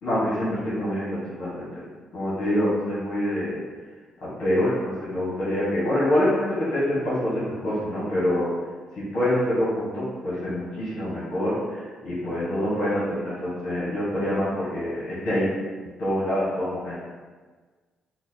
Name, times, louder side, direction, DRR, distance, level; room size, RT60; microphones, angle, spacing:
voice 1, 0.0-1.7 2.1-3.6 4.4-7.3 7.6-8.5 9.0-15.5 16.0-17.0, left 1 dB, 70° left, -10 dB, 1.4 m, -25 dB
4.2 x 2.3 x 2.8 m, 1.4 s
cardioid pair, 100°, 2 cm